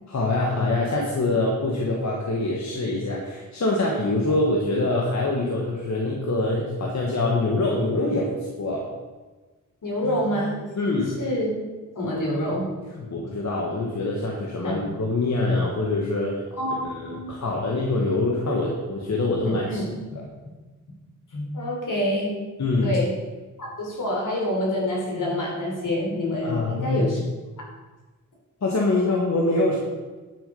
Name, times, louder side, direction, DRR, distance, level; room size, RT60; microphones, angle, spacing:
voice 1, 0.1-8.9 10.8-11.2 13.0-16.4 16.8-19.8 20.1-20.2 22.6-23.0 26.4-27.1 28.6-29.8, left 2 dB, 60° left, -2 dB, 1.6 m, -24 dB
voice 2, 9.8-10.6 11.2-11.5 12.0-12.6 14.6-14.8 16.6-17.3 19.4-20.0 21.3-22.3 22.8-23.1 23.6-27.2, left 1 dB, 75° left, -2 dB, 3.7 m, -27 dB
12.0 x 6.5 x 5.4 m, 1.3 s
wide cardioid pair, 110°, 32 cm